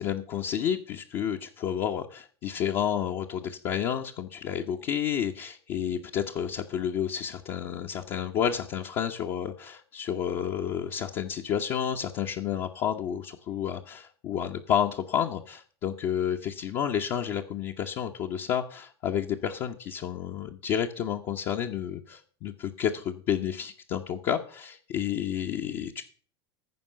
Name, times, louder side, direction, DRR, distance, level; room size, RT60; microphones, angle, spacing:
voice 1, 0.0-26.0, left 9 dB, 45° left, 0 dB, 1.1 m, -30 dB
15.0 x 5.4 x 6.8 m, 0.42 s
figure-of-eight pair, 75°, 14 cm